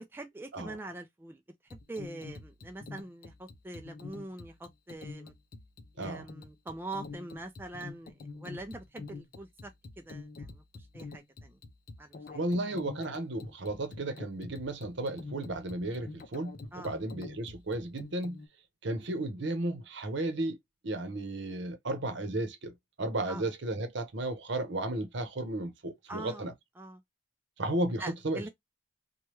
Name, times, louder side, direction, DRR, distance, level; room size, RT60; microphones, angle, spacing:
voice 1, 0.1-1.4 1.7-5.3 6.0-9.7 10.0-11.6 12.0-12.4 16.7-17.0 23.3-23.4 26.1-26.5 26.8-27.0 28.0-28.5, right 2 dB, 10° right, 0.3 m, -43 dB
sound 1, 1.7-18.5, left 3 dB, 45° left, 0.5 m, -46 dB
voice 2, 12.3-18.4 18.8-20.6 20.8-22.7 23.0-26.5 27.6-28.5, right 2 dB, 60° right, 0.8 m, -34 dB
3.1 x 2.2 x 3.0 m
head